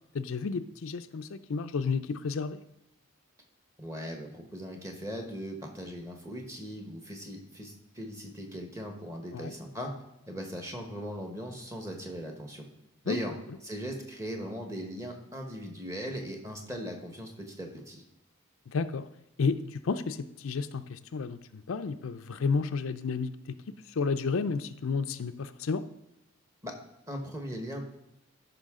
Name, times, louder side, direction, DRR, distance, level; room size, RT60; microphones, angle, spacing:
voice 1, 0.1-2.6 9.3-9.5 13.1-13.2 18.7-19.0 19.4-23.6 23.9-25.8, left 5 dB, 75° left, 10 dB, 0.5 m, -31 dB
voice 2, 3.8-9.9 10.3-12.6 13.0-13.3 13.6-18.0 26.6-26.7 27.1-27.8, equal, 15° right, 2 dB, 1.1 m, -39 dB
13.0 x 5.7 x 3.7 m, 0.90 s
head